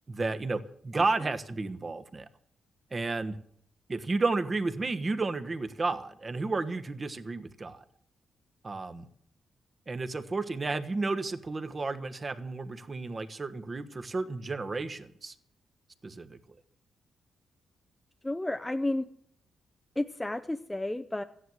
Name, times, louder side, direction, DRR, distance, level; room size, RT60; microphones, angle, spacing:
voice 1, 0.1-2.3 2.9-3.4 3.9-7.8 8.6-9.1 9.9-15.3 16.0-16.4, right 3 dB, 35° right, 9 dB, 1.3 m, -32 dB
voice 2, 18.2-19.1 20.0-21.2, left 1 dB, 10° left, 7 dB, 0.7 m, -31 dB
14.0 x 10.0 x 7.9 m, 0.66 s
cardioid pair, 80°, 0 cm